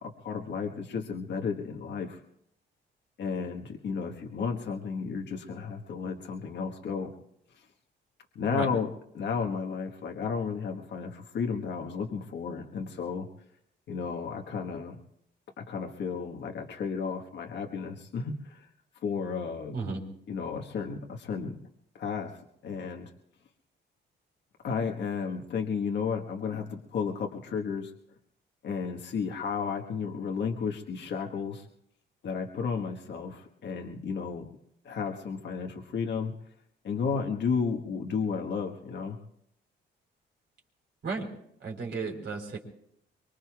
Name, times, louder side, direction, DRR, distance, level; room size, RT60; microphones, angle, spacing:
voice 1, 0.0-2.2 3.2-7.1 8.3-8.9 9.1-13.3 13.9-15.0 15.6-18.7 19.0-19.8 20.3-21.6 21.9-22.3 22.6-23.1 24.6-27.9 28.6-31.6 32.2-34.5 34.8-36.3 36.8-39.2, left 5 dB, 65° left, 2 dB, 1.4 m, -33 dB
voice 2, 41.6-42.6, right 4 dB, 60° right, 1 dB, 4.0 m, -33 dB
24.0 x 23.0 x 2.4 m, 0.73 s
cardioid pair, 90°, 20 cm